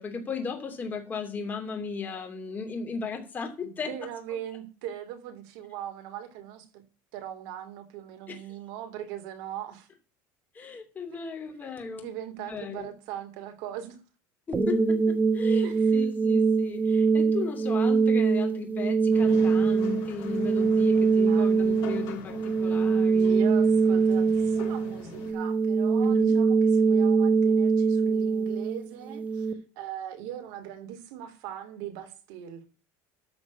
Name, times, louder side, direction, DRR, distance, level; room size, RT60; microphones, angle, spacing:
voice 1, 0.0-3.9 8.3-8.4 10.5-12.1 12.4-12.9 14.5-23.5 26.0-26.4, left 5 dB, 20° left, 2.8 m, -36 dB
voice 2, 3.6-6.8 7.1-9.9 11.2-11.3 11.9-14.0 15.6-16.0 21.3-21.5 23.3-32.6, right 11 dB, 75° right, 3.0 m, -40 dB
sound 1, 14.5-29.5, right 5 dB, 20° right, 1.3 m, -23 dB
sound 2, 19.1-25.3, left 5 dB, 55° left, 4.5 m, -44 dB
13.0 x 4.5 x 8.2 m
cardioid pair, 150°, 8 cm